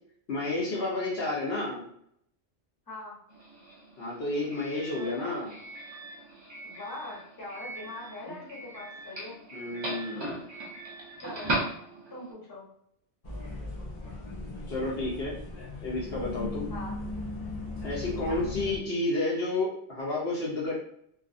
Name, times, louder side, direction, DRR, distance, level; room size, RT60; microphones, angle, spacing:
voice 1, 0.3-1.9 4.0-5.5 9.5-10.4 14.7-15.4 15.8-16.7 17.8-20.7, left 2 dB, 65° left, -5 dB, 0.9 m, -31 dB
Doorbell, 3.3-12.3, right 1 dB, 35° right, 0.5 m, -38 dB
voice 2, 5.0-5.4 6.6-9.4 11.2-11.5 12.1-12.7 16.7-17.0 18.2-18.5, left 2 dB, 20° left, -6 dB, 1.0 m, -42 dB
sound 1, 13.2-18.8, left 2 dB, 45° left, 0.5 m, -38 dB
2.4 x 2.3 x 2.5 m, 0.70 s
omnidirectional pair, 1.2 m